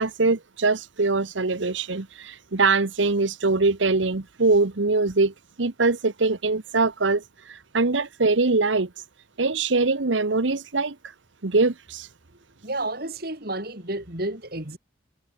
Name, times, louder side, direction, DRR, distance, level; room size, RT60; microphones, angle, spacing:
voice 1, 0.0-5.3 5.6-9.0 9.4-11.1 11.4-12.1, right 3 dB, 80° right, 1.1 m, -23 dB
voice 2, 12.3-14.8, right 2 dB, 50° right, 5.2 m, -31 dB
head